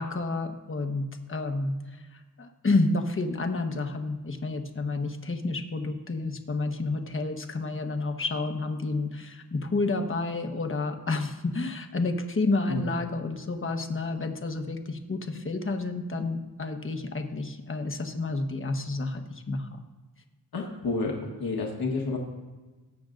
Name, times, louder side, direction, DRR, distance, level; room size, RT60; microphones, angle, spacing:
voice 1, 0.0-1.7 2.1-19.8, left 3 dB, 35° left, 5 dB, 1.2 m, -30 dB
voice 2, 20.5-21.1 21.4-22.2, left 3 dB, 80° left, 0 dB, 1.5 m, -29 dB
19.0 x 7.0 x 2.6 m, 1.3 s
cardioid pair, 65°, 36 cm